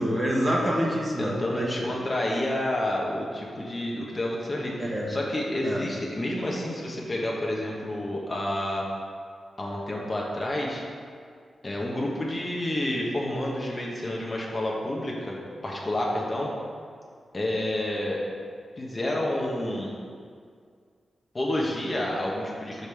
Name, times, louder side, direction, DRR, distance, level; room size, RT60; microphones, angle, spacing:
voice 1, 0.0-1.9 4.8-5.1 5.6-5.8, equal, 20° right, -3 dB, 1.3 m, -26 dB
voice 2, 1.2-8.9 9.6-10.8 11.6-15.4 15.6-16.5 17.3-18.2 18.8-19.9 21.3-22.9, left 1 dB, 30° left, -3 dB, 1.2 m, -29 dB
5.3 x 5.1 x 6.4 m, 2.1 s
wide cardioid pair, 105°, 0 cm